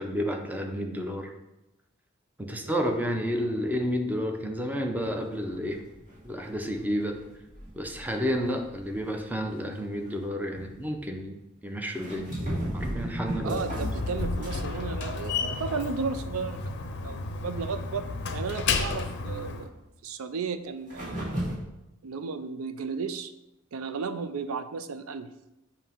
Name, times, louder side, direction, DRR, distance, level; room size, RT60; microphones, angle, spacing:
voice 1, 0.0-1.3 2.4-5.8 6.2-7.2 7.7-12.3 12.7-13.9, equal, 10° right, 3 dB, 0.6 m, -31 dB
sound 1, 5.0-9.6 10.0-10.2 10.6-11.1 11.9-14.8 15.1-16.2 16.5-16.6 17.1-17.2 20.9-21.6, equal, 40° right, 2.4 m, -36 dB
voice 2, 13.4-16.7 17.0-18.1 18.3-19.8 20.0-21.2 22.0-23.3 23.7-25.3, right 5 dB, 85° right, 11 dB, 0.4 m, -34 dB
Slam, 13.5-19.7, left 4 dB, 55° left, 0.5 m, -32 dB
7.1 x 2.8 x 5.6 m, 0.94 s
head